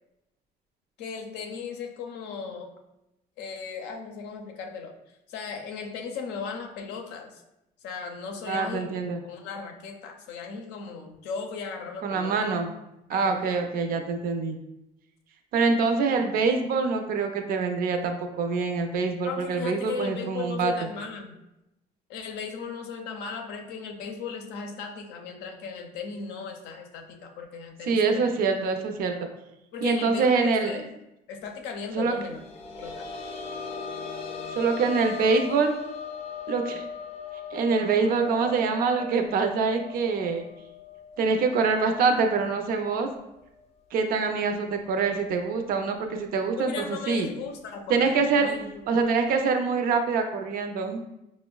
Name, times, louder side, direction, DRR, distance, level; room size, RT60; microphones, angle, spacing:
voice 1, 1.0-2.7 3.4-4.9 5.3-7.4 7.8-8.9 9.2-12.3 13.1-13.6 19.2-21.4 22.1-28.3 29.7-30.8 31.3-32.4 32.8-33.1 46.6-48.7, left 5 dB, 90° left, 3 dB, 0.5 m, -37 dB
voice 2, 8.5-9.2 12.0-12.7 13.1-14.6 15.5-20.7 27.9-29.3 29.8-30.8 31.9-32.1 34.5-35.7 36.5-36.8 37.5-40.5 41.2-43.1 43.9-47.3 47.9-48.5 48.9-51.0, right 4 dB, 60° right, 5 dB, 0.4 m, -25 dB
sound 1, 32.2-43.7 44.0-44.1 45.6-45.7, left 6 dB, 35° left, 0.5 m, -39 dB
5.0 x 2.1 x 2.2 m, 0.90 s
cardioid pair, 110°, 17 cm